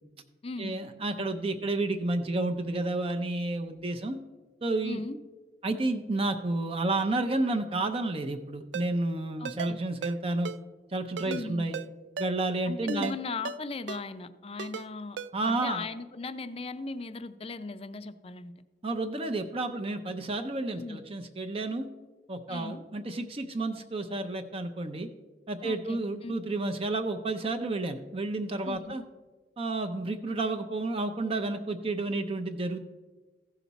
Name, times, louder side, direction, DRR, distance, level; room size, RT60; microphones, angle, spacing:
voice 1, 0.6-4.2 4.6-5.0 5.6-10.5 10.9-11.8 12.2-13.2 15.3-15.8 18.8-21.9 22.3-25.1 25.5-29.0 29.6-32.8, right 2 dB, 35° right, 6 dB, 0.5 m, -31 dB
voice 2, 4.8-5.2 9.4-9.8 11.2-11.7 12.6-15.2 15.4-18.5 20.7-21.0 22.5-22.8 25.6-26.3 28.6-29.0, left 3 dB, 35° left, 12 dB, 0.5 m, -38 dB
Ringtone, 8.7-8.9 9.4-9.7 10.0-10.2 10.4-10.6 11.2-11.4 11.7-11.9 12.2-12.3 12.9-13.2 13.4-13.6 13.9-14.0 14.6-14.9 15.2-15.3, right 6 dB, 85° right, 0.4 m, -36 dB
15.0 x 5.8 x 4.1 m, 1.3 s
head